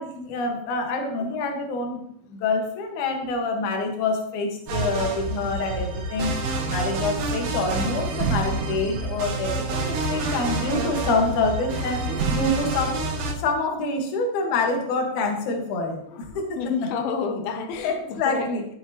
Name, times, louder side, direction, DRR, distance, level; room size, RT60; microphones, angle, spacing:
voice 1, 0.0-2.0 2.3-6.3 6.7-13.0 13.4-16.6 17.8-18.6, left 3 dB, 60° left, 2.7 m, -26 dB
sound 1, 4.7-13.3, right 2 dB, 80° right, 3.3 m, -28 dB
voice 2, 16.1-18.7, left 5 dB, 90° left, 2.7 m, -30 dB
13.0 x 7.6 x 2.9 m
omnidirectional pair, 4.2 m